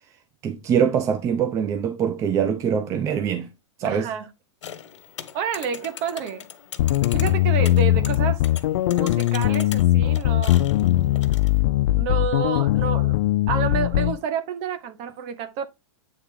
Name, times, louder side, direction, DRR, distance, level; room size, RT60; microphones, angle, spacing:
voice 1, 0.4-3.5 3.8-4.1, right 7 dB, 20° right, 0.5 m, -23 dB
voice 2, 3.8-4.3 5.3-6.5 7.1-8.4 8.8-10.7 11.9-13.2 13.5-15.7, right 7 dB, 35° right, 0.9 m, -29 dB
sound 1, 4.6-11.6, left 9 dB, 80° left, 1.2 m, -40 dB
sound 2, 6.8-14.2, left 15 dB, 55° left, 0.4 m, -20 dB
8.5 x 3.4 x 3.6 m
hypercardioid pair, 150°, 15 cm